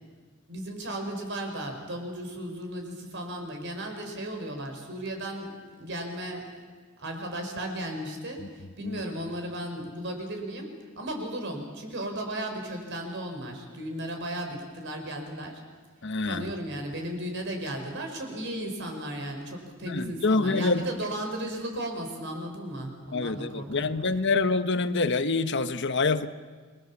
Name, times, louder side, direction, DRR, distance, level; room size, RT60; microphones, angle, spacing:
voice 1, 0.5-6.5 7.0-15.6 16.2-24.2, right 1 dB, 55° right, 3 dB, 5.1 m, -35 dB
voice 2, 16.0-16.5 19.8-20.8 23.1-26.3, left 3 dB, 55° left, 10 dB, 1.0 m, -26 dB
29.0 x 22.5 x 7.3 m, 1.5 s
head